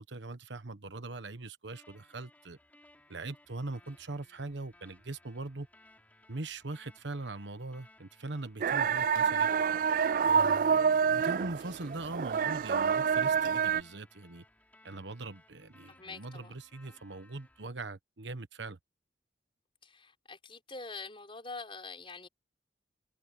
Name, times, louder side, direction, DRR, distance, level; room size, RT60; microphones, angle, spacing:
voice 1, 0.0-2.6 3.1-5.7 6.3-9.6 10.2-14.4 14.8-18.8, right 2 dB, 80° right, 1.2 m, -41 dB
sound 1, 1.7-17.7, left 1 dB, 10° left, 4.2 m, -62 dB
sound 2, 8.6-13.8, right 6 dB, 45° right, 0.3 m, -27 dB
voice 2, 15.9-16.5 16.9-17.0 19.8-22.3, left 3 dB, 30° left, 6.0 m, -45 dB
head